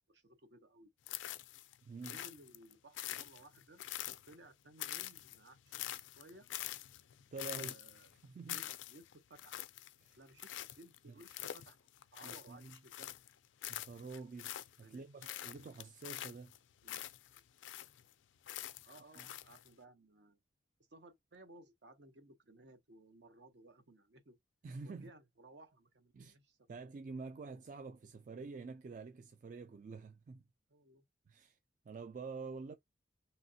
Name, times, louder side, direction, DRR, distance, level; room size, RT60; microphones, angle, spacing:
voice 1, 0.1-0.9 2.1-3.9 4.2-6.5 7.5-8.1 8.5-9.7 10.2-13.2 14.8-15.4 16.8-17.1 18.8-20.4 20.9-24.4 24.9-26.9 30.7-31.0, right 2 dB, 65° right, 0.8 m, -60 dB
sound 1, 1.1-1.8 2.0-4.5 4.8-13.3 13.6-14.9 15.2-18.1 18.4-19.7, left 13 dB, 85° left, 0.4 m, -45 dB
voice 2, 1.8-2.2 7.3-7.8 8.2-8.6 10.0-10.2 12.2-12.8 13.7-14.5 14.8-16.5 19.2-19.3 24.6-25.1 26.1-26.4 26.7-30.4 31.3-31.6 31.9-32.7, right 4 dB, 45° right, 0.3 m, -47 dB
3.2 x 2.8 x 2.7 m
head